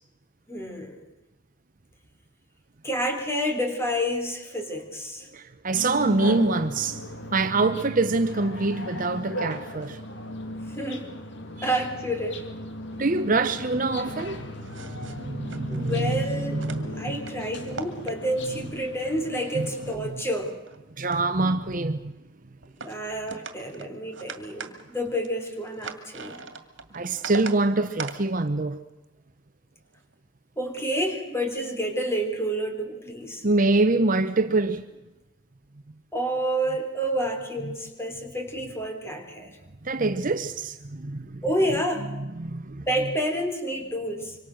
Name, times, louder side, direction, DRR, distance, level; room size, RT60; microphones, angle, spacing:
voice 1, 0.5-1.0 2.8-5.3 10.7-11.1 11.6-12.5 15.7-16.6 17.0-20.5 22.8-26.4 30.6-33.4 36.1-39.5 41.4-42.1 42.9-44.4, equal, 15° left, 3.5 m, -29 dB
voice 2, 5.3-7.0 7.3-10.0 11.6-11.7 13.0-14.5 14.9-17.2 19.5-19.7 20.0-20.2 21.0-22.1 26.9-28.8 33.4-34.8 39.8-41.4 42.2-42.9, right 3 dB, 40° right, 0.9 m, -25 dB
sound 1, 5.7-19.9, left 1 dB, 60° left, 2.5 m, -37 dB
sound 2, 14.1-16.0 16.5-17.3 17.7-18.6 19.0-20.8 21.1-21.8 22.6-23.0 23.3-27.6 28.0-28.2 29.9-30.1 30.8-31.0, right 4 dB, 65° right, 2.2 m, -41 dB
26.0 x 25.0 x 6.5 m
head